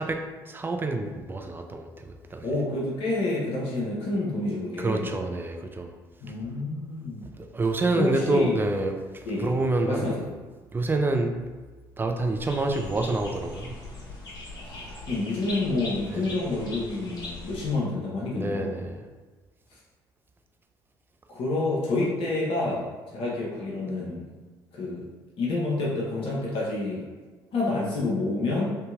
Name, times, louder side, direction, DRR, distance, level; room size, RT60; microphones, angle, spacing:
voice 1, 0.0-2.5 4.8-5.9 7.4-10.2 10.7-11.4 12.0-13.8 16.1-16.4 18.3-19.1, right 2 dB, 20° right, 5 dB, 0.3 m, -28 dB
voice 2, 2.4-5.1 6.2-7.3 7.9-8.6 9.3-9.6 9.9-10.2 14.6-18.7 21.3-24.3 24.7-25.1 25.4-27.0 27.5-28.7, left 2 dB, 55° left, -5 dB, 0.8 m, -28 dB
sound 1, 12.4-17.7, left 2 dB, 30° left, 1.4 m, -40 dB
2.8 x 2.6 x 2.4 m, 1.3 s
hypercardioid pair, 55°, 11 cm